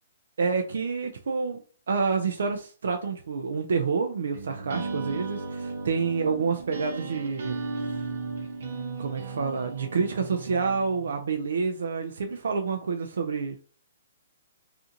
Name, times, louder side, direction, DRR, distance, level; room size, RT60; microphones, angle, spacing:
voice 1, 0.4-1.6 1.9-7.6 7.9-8.1 9.0-13.6, right 5 dB, 75° right, 0.3 m, -28 dB
sound 1, 4.3-11.1, right 3 dB, 60° right, 0.7 m, -35 dB
2.5 x 2.4 x 2.7 m
hypercardioid pair, 165°, 0 cm